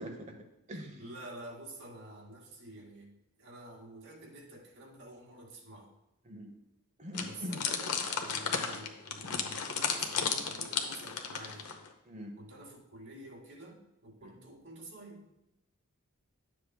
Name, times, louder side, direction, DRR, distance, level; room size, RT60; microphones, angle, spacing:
voice 1, 0.0-1.0 6.2-6.5 7.0-7.6 12.0-12.4 14.2-14.3, equal, 30° right, 3 dB, 1.0 m, -43 dB
voice 2, 1.0-3.1 3.4-5.9 7.2-11.8 12.4-15.3, right 1 dB, 55° right, -2 dB, 2.3 m, -49 dB
sound 1, 7.1-11.9, left 6 dB, 85° left, 0.9 m, -34 dB
11.0 x 7.5 x 2.3 m, 0.88 s
head